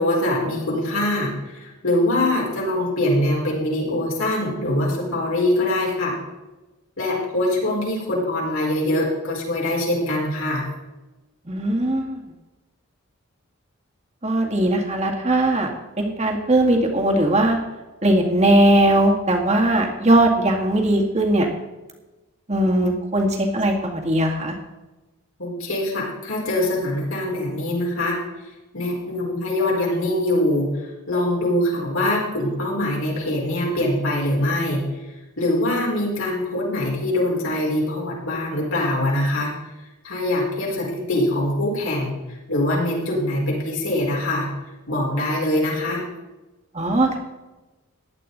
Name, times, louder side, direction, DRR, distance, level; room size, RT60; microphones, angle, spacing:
voice 1, 0.0-6.2 7.0-10.7 25.4-28.2 28.7-30.7 31.1-34.8 35.4-39.5 40.0-42.2 42.5-44.5 44.9-46.0, left 1 dB, 70° left, -3 dB, 4.7 m, -23 dB
voice 2, 11.5-12.2 14.2-15.7 16.0-17.6 18.0-21.5 22.5-24.6 46.7-47.2, right 1 dB, 30° right, 1 dB, 2.0 m, -19 dB
15.5 x 11.0 x 4.1 m, 1.1 s
head